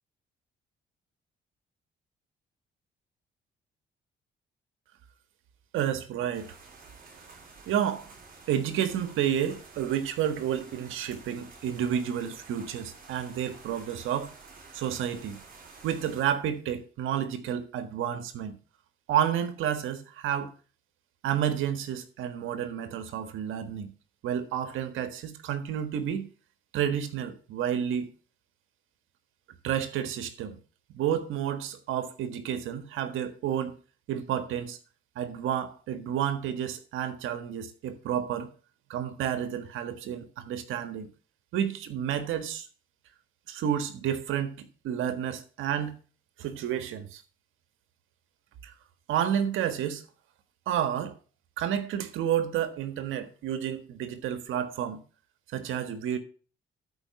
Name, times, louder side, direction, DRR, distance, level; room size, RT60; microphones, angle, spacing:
voice 1, 5.7-6.6 7.7-8.1 8.5-14.3 14.7-15.4 15.8-18.5 19.1-20.5 21.2-23.9 24.2-26.3 26.7-28.1 29.6-30.6 30.9-33.8 34.1-34.8 35.1-38.5 38.9-41.1 41.5-42.7 43.5-45.9 46.4-47.2 48.6-48.7 49.1-50.0 50.7-51.2 51.6-55.0 55.5-56.2, right 9 dB, 85° right, 1.6 m, -30 dB
sound 1, 6.3-16.2, right 4 dB, 45° right, 4.1 m, -51 dB
12.5 x 5.1 x 6.9 m
cardioid pair, 90°, 20 cm